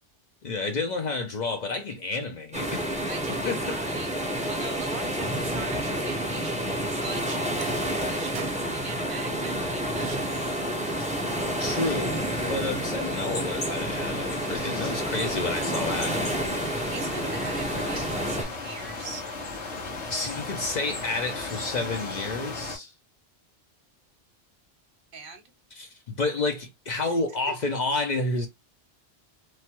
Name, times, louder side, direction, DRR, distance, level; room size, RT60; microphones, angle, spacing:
voice 1, 0.4-2.9 3.3-3.8 11.6-16.3 20.1-22.9 25.7-28.5, left 3 dB, 50° left, 0.6 m, -30 dB
sound 1, 2.5-18.4, right 1 dB, 10° right, 0.6 m, -29 dB
voice 2, 3.1-10.5 16.9-19.2 25.1-25.5 27.0-27.4, right 4 dB, 55° right, 0.9 m, -42 dB
sound 2, 4.9-6.2 7.3-7.4 7.6-8.7 9.1-10.7 11.1-11.2 12.3-12.5, right 8 dB, 80° right, 0.9 m, -45 dB
sound 3, 10.3-22.8, left 3 dB, 80° left, 1.4 m, -37 dB
3.1 x 2.2 x 2.8 m
omnidirectional pair, 1.2 m